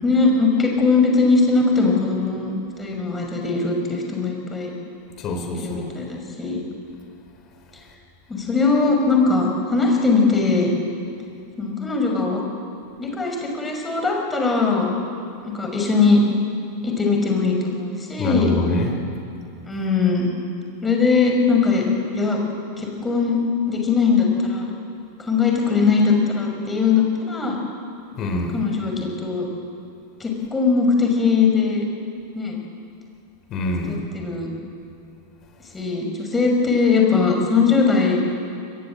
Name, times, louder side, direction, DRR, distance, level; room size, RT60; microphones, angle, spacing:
voice 1, 0.0-4.7 5.6-6.6 8.3-10.7 11.6-12.4 13.0-14.9 15.4-16.2 16.8-18.5 19.7-20.3 20.8-22.4 22.8-24.7 25.2-27.6 28.5-29.5 30.2-31.8 32.3-32.6 33.9-34.5 35.7-38.2, left 4 dB, 15° left, 1 dB, 6.1 m, -20 dB
voice 2, 5.2-5.9 18.2-19.0 28.2-28.6 33.5-34.0, left 1 dB, 35° left, 5 dB, 4.5 m, -25 dB
27.0 x 21.5 x 7.7 m, 2.6 s
figure-of-eight pair, 90°, 0 cm